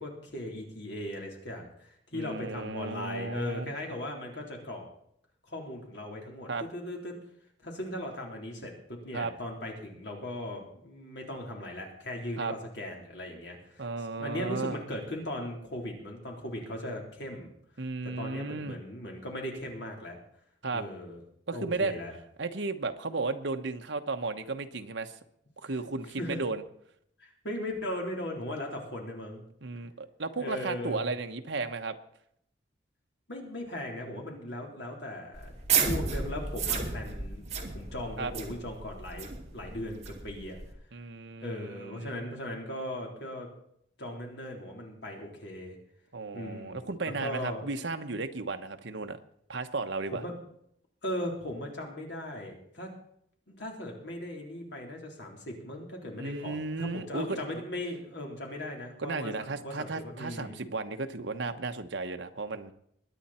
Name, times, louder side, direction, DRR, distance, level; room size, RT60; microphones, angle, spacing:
voice 1, 0.0-4.8 5.5-7.2 7.6-13.9 14.2-17.5 18.0-20.2 20.7-21.2 21.5-22.1 26.2-26.4 27.2-29.4 30.4-31.1 33.3-37.5 37.7-40.6 41.4-43.5 44.0-45.8 46.3-46.9 47.2-47.6 50.1-50.3 51.0-52.9 53.5-60.6, left 1 dB, 65° left, 0 dB, 3.8 m, -38 dB
voice 2, 2.1-3.7 6.5-6.7 9.1-9.3 12.4-12.5 13.8-14.8 17.8-18.8 20.6-20.8 21.5-21.9 22.4-25.1 25.6-26.6 29.6-32.0 38.2-38.3 40.9-42.1 46.1-49.2 49.5-50.2 56.2-57.3 57.5-57.6 59.0-62.7, right 3 dB, 70° right, 7 dB, 1.1 m, -34 dB
sound 1, 35.3-40.7, right 5 dB, 35° right, 2.3 m, -33 dB
22.0 x 9.5 x 4.4 m, 0.70 s
head